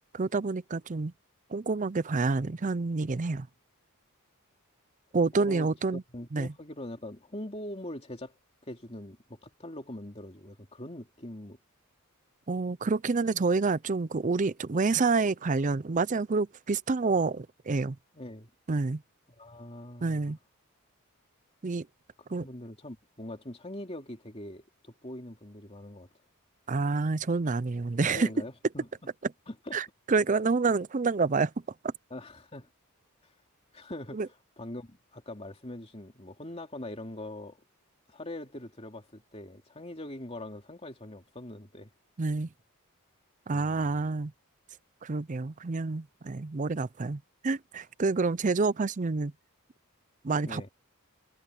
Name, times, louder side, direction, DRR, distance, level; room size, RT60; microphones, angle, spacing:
voice 1, 0.1-1.1 1.5-3.5 5.1-6.0 6.3-6.5 12.5-18.0 18.7-19.0 20.0-20.4 21.6-21.9 22.3-22.5 26.7-28.3 29.7-31.5 31.8-31.9 34.1-34.3 42.2-42.5 43.5-44.3 45.0-49.3 50.2-50.7, right 4 dB, 35° right, 0.5 m, -28 dB
voice 2, 5.4-8.3 8.6-11.6 18.1-18.5 19.4-20.4 22.3-26.1 28.0-28.9 29.5-29.8 32.1-32.7 33.2-33.3 33.7-34.3 34.6-37.6 38.1-41.9 43.5-44.1 50.4-50.7, left 1 dB, 25° left, 3.0 m, -42 dB
head